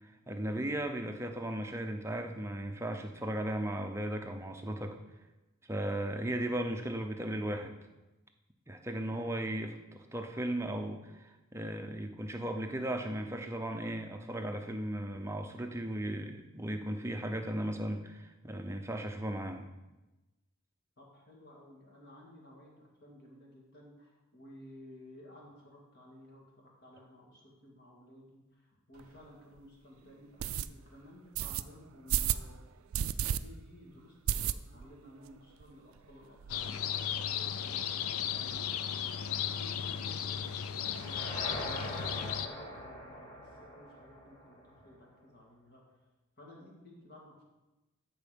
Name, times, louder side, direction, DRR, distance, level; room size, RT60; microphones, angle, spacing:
voice 1, 0.0-5.0 5.7-7.7 8.7-19.7, right 1 dB, 10° right, 5 dB, 0.6 m, -36 dB
voice 2, 21.0-32.6 33.4-45.8 46.4-47.4, left 1 dB, 45° left, -2 dB, 2.3 m, -55 dB
sound 1, 29.0-29.1 29.6-29.7 30.4-30.7 31.4-31.6 32.1-32.5 32.9-33.4 33.7-33.8 34.3-34.9 35.3-35.4 35.6-35.7 36.0-36.6, right 9 dB, 75° right, 0.3 m, -31 dB
sound 2, 36.5-42.5, left 8 dB, 85° left, 0.5 m, -35 dB
sound 3, 40.8-44.9, equal, 20° left, 1.6 m, -43 dB
13.0 x 4.4 x 5.3 m, 1.1 s
head